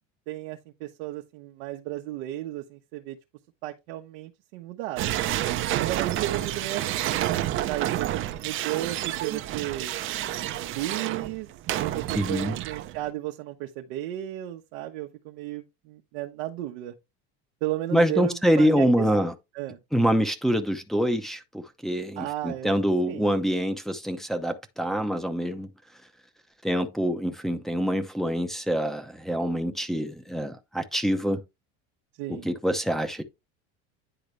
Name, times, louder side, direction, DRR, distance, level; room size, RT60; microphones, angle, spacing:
voice 1, 0.3-3.2 3.6-5.2 5.8-9.9 10.7-11.5 11.8-16.9 17.6-19.1 19.5-19.8 22.2-22.7 23.1-23.3 32.2-32.5, right 14 dB, 85° right, 1.1 m, -34 dB
sound 1, 5.0-13.1, right 13 dB, 40° right, 0.7 m, -29 dB
voice 2, 12.2-12.5 17.9-19.3 19.9-25.7 26.6-31.4 32.3-33.2, equal, ahead, 0.7 m, -25 dB
10.0 x 3.9 x 3.2 m
cardioid pair, 145°, 30 cm